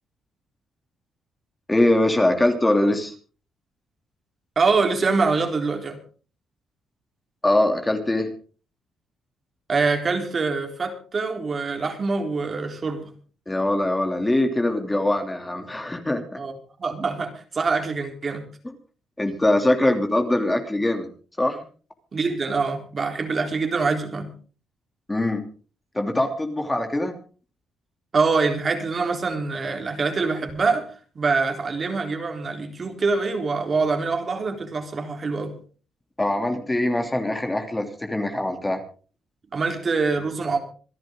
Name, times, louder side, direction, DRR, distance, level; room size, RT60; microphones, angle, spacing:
voice 1, 1.7-3.1 7.4-8.3 13.5-16.4 19.2-21.1 21.4-21.6 25.1-25.4 25.9-27.1 36.2-38.8, left 1 dB, 15° left, 5 dB, 2.9 m, -22 dB
voice 2, 4.6-6.0 9.7-13.1 16.4-18.5 22.1-24.3 28.1-30.9 31.2-35.5 39.5-40.6, right 4 dB, 40° right, 4 dB, 3.8 m, -24 dB
27.0 x 10.5 x 3.8 m, 0.39 s
cardioid pair, 90°, 0 cm